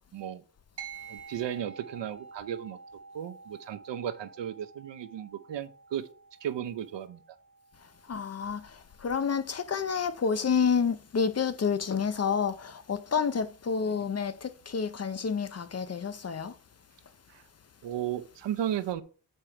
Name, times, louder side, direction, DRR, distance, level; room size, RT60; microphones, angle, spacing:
sound 1, 0.8-10.5, right 5 dB, 70° right, 1.6 m, -50 dB
voice 1, 1.1-2.8 3.1-6.1 6.4-7.2 13.8-14.0 17.3-17.4 17.8-19.0, right 10 dB, 90° right, 0.8 m, -35 dB
voice 2, 8.1-16.5, left 6 dB, 35° left, 0.6 m, -29 dB
6.8 x 4.4 x 4.8 m
cardioid pair, 85°, 42 cm